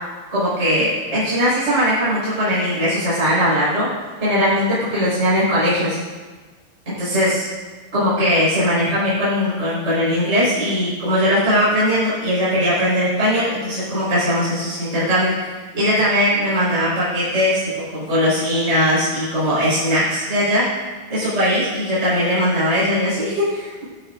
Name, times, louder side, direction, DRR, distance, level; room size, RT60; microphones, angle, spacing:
voice 1, 0.3-3.9 4.2-6.0 7.0-7.5 7.9-17.6 17.9-20.6 21.1-23.8, equal, 15° right, -10 dB, 4.6 m, -19 dB
17.0 x 13.0 x 2.6 m, 1.3 s
omnidirectional pair, 5.4 m